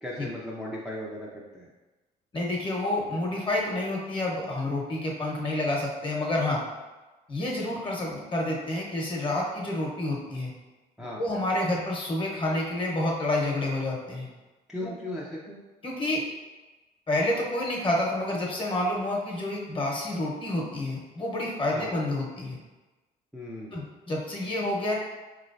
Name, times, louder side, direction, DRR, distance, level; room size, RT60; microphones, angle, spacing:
voice 1, 0.0-1.7 11.0-11.2 14.7-15.6 21.7-21.9 23.3-23.8, left 1 dB, ahead, -6 dB, 0.5 m, -37 dB
voice 2, 2.3-6.6 7.3-10.5 11.2-14.3 14.8-14.9 15.8-16.2 17.1-22.6 23.7-24.9, left 1 dB, 30° left, -2 dB, 1.0 m, -29 dB
4.4 x 3.1 x 2.6 m, 1.2 s
cardioid pair, 110°, 17 cm